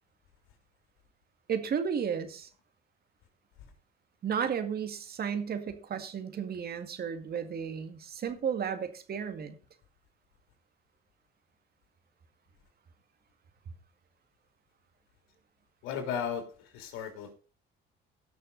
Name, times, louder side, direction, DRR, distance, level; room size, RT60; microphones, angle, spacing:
voice 1, 1.5-2.5 4.2-9.6, right 7 dB, 50° right, 2.1 m, -33 dB
voice 2, 15.8-17.3, left 7 dB, 90° left, 3.2 m, -35 dB
17.0 x 6.4 x 4.0 m
cardioid pair, 95°, 20 cm